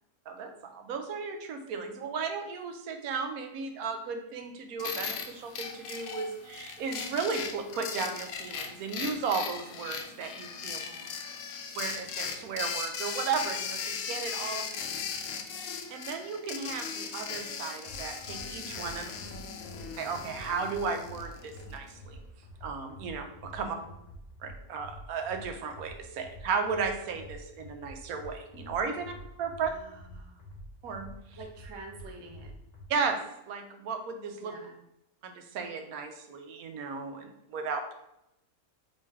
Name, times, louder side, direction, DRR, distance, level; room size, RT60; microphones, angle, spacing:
voice 1, 0.3-10.8 11.8-14.6 15.6-19.1 20.0-22.2 22.6-23.8 24.4-29.1 29.4-29.7 30.8-31.1 32.9-33.2 33.5-34.5 35.2-37.9, right 5 dB, 85° right, 6 dB, 1.1 m, -35 dB
sound 1, 4.8-21.8, left 6 dB, 75° left, 1.0 m, -38 dB
voice 2, 10.7-11.1 14.5-15.0 19.0-19.8 23.6-24.0 29.6-30.4 31.4-32.5 34.4-34.8, right 3 dB, 45° right, 1 dB, 0.3 m, -50 dB
sound 2, 17.9-32.9, equal, 35° left, 0.9 m, -48 dB
4.4 x 3.1 x 3.5 m, 0.83 s
omnidirectional pair, 1.5 m